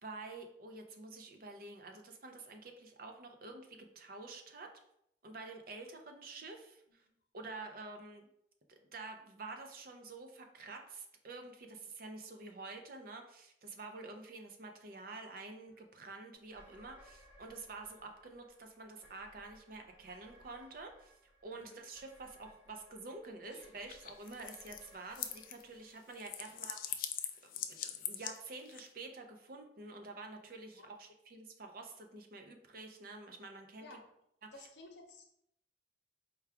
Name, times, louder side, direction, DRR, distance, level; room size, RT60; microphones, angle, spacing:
voice 1, 0.0-4.7 5.2-7.0 7.3-8.2 8.7-21.1 21.4-26.8 27.5-34.0 34.4-34.7, right 3 dB, 55° right, 5 dB, 0.5 m, -48 dB
sound 1, 16.5-26.9, equal, 5° right, 0.8 m, -64 dB
voice 2, 21.5-21.8 23.5-23.7 26.4-26.7 30.7-30.8 33.8-34.0 34.5-35.3, left 2 dB, 85° left, 3 dB, 0.8 m, -55 dB
sound 2, 23.9-25.6 26.0-28.9, left 10 dB, 50° left, 0.3 m, -42 dB
4.5 x 2.3 x 3.4 m, 0.76 s
head